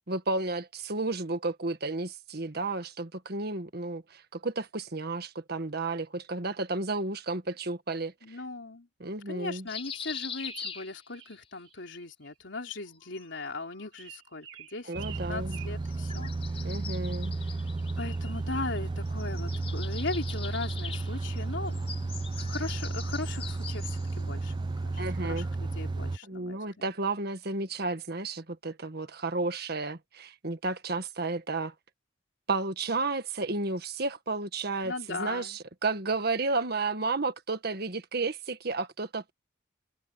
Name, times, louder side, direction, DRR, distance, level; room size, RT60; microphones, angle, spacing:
voice 1, 0.1-8.1 9.0-9.7 14.9-15.6 16.6-17.3 25.0-25.5 26.2-31.7 32.5-39.3, right 3 dB, 55° right, 1.6 m, -32 dB
voice 2, 8.2-8.9 9.3-14.9 15.3-16.3 18.0-21.8 22.4-26.9 34.8-35.6, left 3 dB, 75° left, 3.2 m, -38 dB
sound 1, 9.7-11.4 12.8-13.9 15.8-18.8 19.1-24.2, left 7 dB, 30° left, 5.3 m, -43 dB
sound 2, 10.5-11.4 11.6-12.3 13.9-15.7, right 11 dB, 75° right, 2.5 m, -46 dB
sound 3, 14.9-26.2, right 3 dB, 25° right, 0.3 m, -33 dB
head